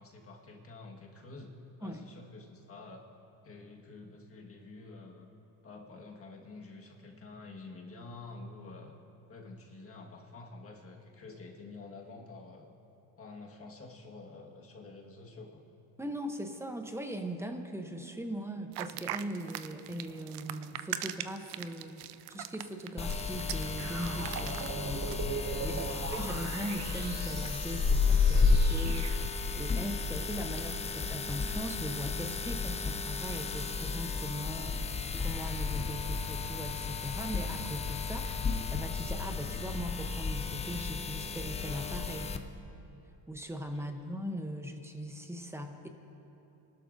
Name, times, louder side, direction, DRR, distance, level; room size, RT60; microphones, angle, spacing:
voice 1, 0.0-3.0 3.4-5.3 5.6-8.9 9.3-12.7 13.2-15.6 25.7-26.0 43.7-43.9, left 3 dB, 30° left, 0 dB, 1.7 m, -49 dB
voice 2, 16.0-22.0 22.3-25.1 25.6-42.4 43.3-45.9, equal, 5° right, 5 dB, 0.9 m, -40 dB
sound 1, 18.7-25.2, right 13 dB, 70° right, 0.6 m, -41 dB
sound 2, 23.0-42.4, left 4 dB, 15° left, 0.5 m, -32 dB
sound 3, 23.8-29.5, right 6 dB, 40° right, 0.9 m, -41 dB
28.5 x 12.5 x 2.7 m, 3.0 s
cardioid pair, 115°, 43 cm